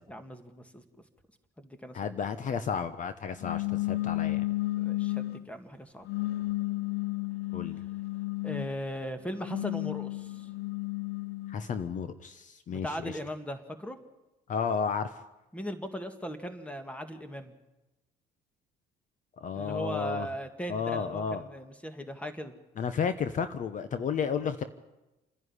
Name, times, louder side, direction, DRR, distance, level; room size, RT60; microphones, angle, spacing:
voice 1, 0.1-0.8 1.6-2.3 4.8-6.1 8.4-10.5 12.7-14.0 15.5-17.5 19.5-22.5, equal, 5° left, 8 dB, 2.1 m, -38 dB
voice 2, 1.9-4.4 7.5-7.8 11.5-13.1 14.5-15.1 19.4-20.3 20.7-21.5 22.8-24.6, left 6 dB, 50° left, 11 dB, 1.1 m, -32 dB
sound 1, 3.4-5.4 6.1-8.7 9.3-11.6, left 19 dB, 75° left, 0.9 m, -32 dB
28.5 x 11.0 x 10.0 m, 1.0 s
cardioid pair, 110°, 17 cm